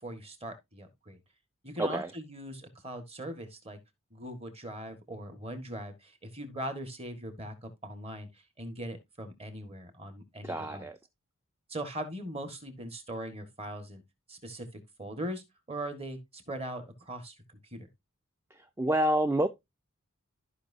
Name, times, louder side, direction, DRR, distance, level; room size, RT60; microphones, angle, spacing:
voice 1, 0.0-1.2 1.6-3.8 4.1-10.9 11.7-14.0 14.3-17.9, right 1 dB, 25° right, 1.6 m, -40 dB
voice 2, 1.8-2.1 10.4-11.0 18.5-19.5, right 1 dB, 10° right, 0.4 m, -28 dB
13.5 x 5.3 x 2.7 m
head